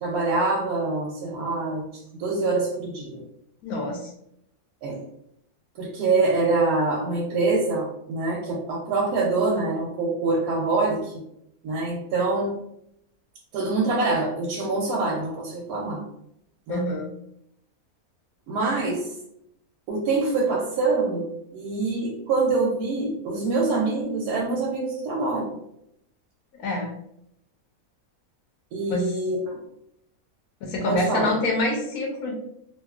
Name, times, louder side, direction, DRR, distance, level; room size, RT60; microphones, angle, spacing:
voice 1, 0.0-3.2 4.8-5.0 5.8-11.1 11.6-12.5 13.5-16.0 16.7-16.8 18.5-19.1 19.9-25.5 28.7-29.6 30.9-31.3, right 3 dB, 85° right, -3 dB, 1.1 m, -25 dB
voice 2, 3.6-4.1 16.7-17.1 26.6-26.9 28.9-29.1 30.6-32.3, left 2 dB, 75° left, 0 dB, 1.0 m, -26 dB
2.8 x 2.4 x 2.3 m, 0.76 s
omnidirectional pair, 1.6 m